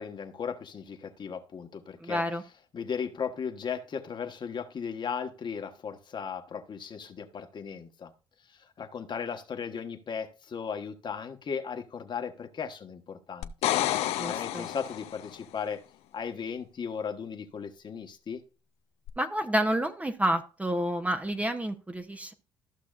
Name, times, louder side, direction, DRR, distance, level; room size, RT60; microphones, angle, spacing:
voice 1, 0.0-2.2 2.7-8.1 8.5-13.7 14.3-15.8 16.1-18.4, left 6 dB, 45° left, 6 dB, 1.2 m, -36 dB
voice 2, 2.0-2.4 14.2-14.7 19.2-22.3, right 1 dB, 10° right, 6 dB, 0.8 m, -29 dB
sound 1, 13.4-15.3 19.1-19.2, left 13 dB, 75° left, 0.5 m, -30 dB
14.0 x 5.9 x 2.5 m, 0.34 s
supercardioid pair, 80°, 11 cm